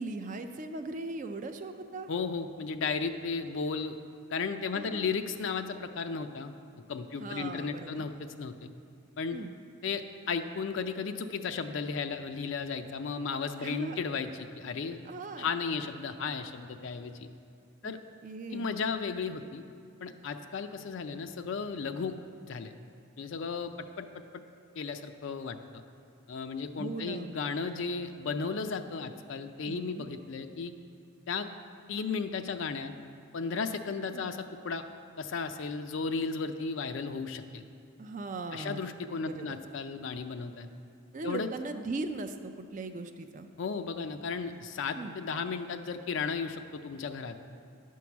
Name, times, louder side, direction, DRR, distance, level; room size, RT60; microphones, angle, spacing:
voice 1, 0.0-2.1 4.7-5.1 7.1-8.1 9.3-9.5 13.6-14.0 15.1-15.5 17.8-17.9 18.2-18.7 26.8-27.3 29.6-30.1 34.1-34.3 38.0-38.8 39.2-39.6 41.1-43.5 45.0-45.2, right 3 dB, 35° right, 7 dB, 0.4 m, -39 dB
voice 2, 2.1-4.0 4.3-6.5 6.9-8.7 9.2-9.4 9.8-15.0 15.4-17.3 17.8-18.0 18.5-19.6 20.0-22.2 22.4-22.7 23.2-24.1 24.8-25.6 26.3-30.7 31.3-31.5 31.9-32.9 33.3-34.8 35.2-37.6 38.5-40.7 41.2-41.5 43.6-47.4, left 5 dB, 60° left, 7 dB, 0.4 m, -34 dB
10.5 x 4.7 x 7.0 m, 2.4 s
head